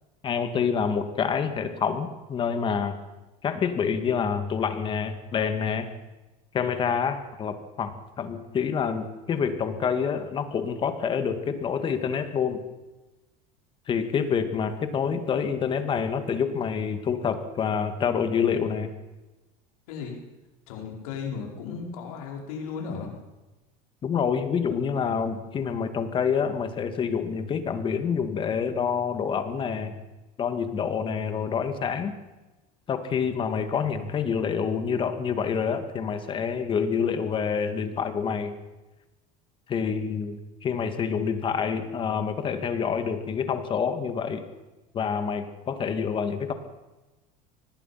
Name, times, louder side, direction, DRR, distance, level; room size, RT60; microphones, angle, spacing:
voice 1, 0.2-3.0 3.4-5.9 6.5-12.6 13.9-18.9 24.0-30.0 30.4-32.1 32.9-38.6 39.7-44.4 44.9-46.5, left 6 dB, 30° left, 8 dB, 2.2 m, -27 dB
voice 2, 19.9-20.2 20.7-23.2, left 5 dB, 90° left, 1 dB, 4.8 m, -35 dB
24.0 x 20.0 x 5.9 m, 1.1 s
cardioid pair, 145°, 18 cm